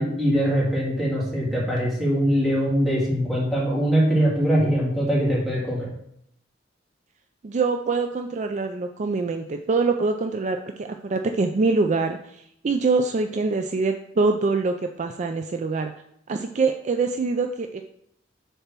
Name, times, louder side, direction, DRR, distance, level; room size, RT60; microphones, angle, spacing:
voice 1, 0.0-5.9, equal, ahead, -6 dB, 2.9 m, -22 dB
voice 2, 7.4-15.9 16.3-17.8, right 3 dB, 40° right, 6 dB, 0.4 m, -24 dB
6.7 x 4.3 x 5.9 m, 0.74 s
head